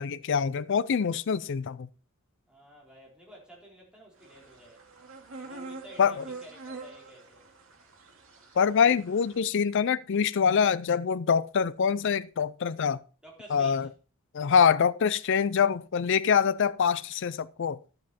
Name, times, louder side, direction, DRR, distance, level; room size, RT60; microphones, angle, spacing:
voice 1, 0.0-1.9 6.0-6.2 8.6-13.0 13.5-13.9 14.3-17.8, left 6 dB, 60° left, 0.5 m, -25 dB
voice 2, 2.5-4.8 5.4-7.5 13.2-13.9, equal, 5° right, 4.1 m, -51 dB
sound 1, 4.2-9.4, right 3 dB, 70° right, 2.4 m, -45 dB
12.0 x 7.6 x 4.3 m
head